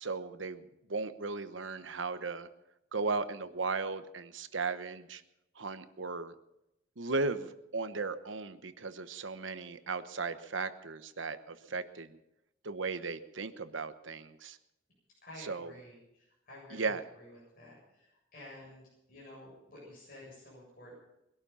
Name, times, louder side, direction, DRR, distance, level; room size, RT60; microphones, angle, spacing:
voice 1, 0.0-2.5 2.9-5.2 5.6-6.3 7.0-12.2 12.6-14.6 15.4-15.7 16.7-17.0, right 4 dB, 80° right, 11 dB, 1.1 m, -36 dB
voice 2, 15.2-21.0, left 1 dB, 45° left, -5 dB, 7.7 m, -52 dB
21.5 x 12.0 x 5.7 m, 0.88 s
head